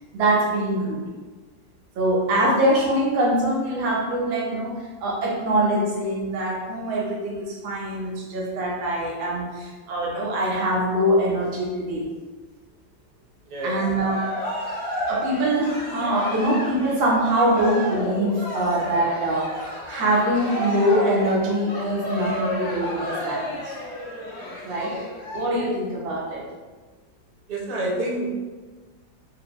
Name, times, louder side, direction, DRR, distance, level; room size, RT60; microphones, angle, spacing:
voice 1, 0.1-1.0 1.9-4.7 5.0-12.1 13.6-14.3 15.1-23.7 24.6-24.9 25.3-26.4, right 1 dB, 85° right, -3 dB, 1.6 m, -23 dB
voice 2, 13.5-13.8 27.5-28.3, right 1 dB, 65° right, -4 dB, 0.5 m, -27 dB
Cheering, 13.6-25.4, left 1 dB, 50° left, 1.2 m, -31 dB
3.9 x 2.7 x 3.0 m, 1.4 s
omnidirectional pair, 2.1 m